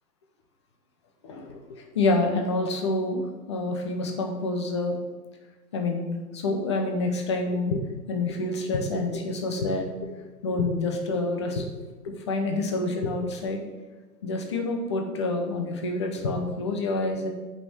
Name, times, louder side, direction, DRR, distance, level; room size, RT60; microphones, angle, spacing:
voice 1, 1.2-3.2 3.5-5.0 5.7-9.9 10.4-11.7 12.0-13.6 14.2-17.3, left 2 dB, 20° left, 3 dB, 0.6 m, -27 dB
7.4 x 5.6 x 7.5 m, 1.2 s
hypercardioid pair, 145°, 49 cm